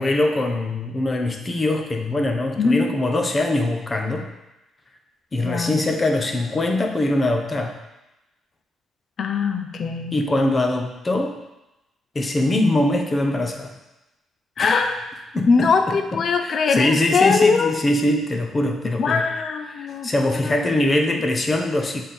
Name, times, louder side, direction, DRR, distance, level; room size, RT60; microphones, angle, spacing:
voice 1, 0.0-4.3 5.3-7.7 10.1-11.4 12.1-13.7 14.6-14.8 15.3-19.3 19.7-22.0, left 1 dB, 30° left, 4 dB, 0.8 m, -22 dB
voice 2, 5.4-5.8 9.2-10.1 14.6-14.9 15.5-17.8 19.0-20.1 20.4-20.5, left 5 dB, 55° left, 6 dB, 0.5 m, -21 dB
7.1 x 3.6 x 4.3 m, 0.97 s
cardioid pair, 90°, 0 cm